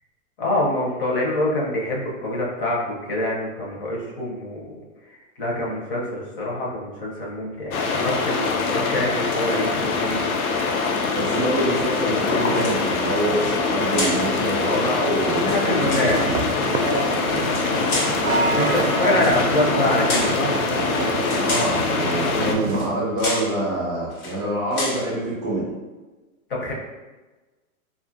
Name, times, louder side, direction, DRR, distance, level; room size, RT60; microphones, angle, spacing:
voice 1, 0.4-4.7 5.0-10.2 15.5-16.5 18.5-20.6 26.5-26.7, left 1 dB, 40° left, -3 dB, 0.7 m, -25 dB
sound 1, 7.7-22.5, left 4 dB, 75° left, 0.6 m, -24 dB
voice 2, 11.1-16.0 16.8-17.1 21.3-25.7, right 1 dB, 20° right, -5 dB, 0.6 m, -25 dB
sound 2, 12.6-13.1 13.9-14.3 15.3-16.1 17.4-18.2 19.1-19.4 20.1-20.4 21.2-21.8 22.7-22.9 23.2-23.5 24.1-24.4 24.7-25.1, left 1 dB, 90° left, 1.2 m, -29 dB
sound 3, 15.8-22.9, right 4 dB, 75° right, 0.5 m, -28 dB
2.5 x 2.4 x 2.5 m, 1.2 s
hypercardioid pair, 170°, 43 cm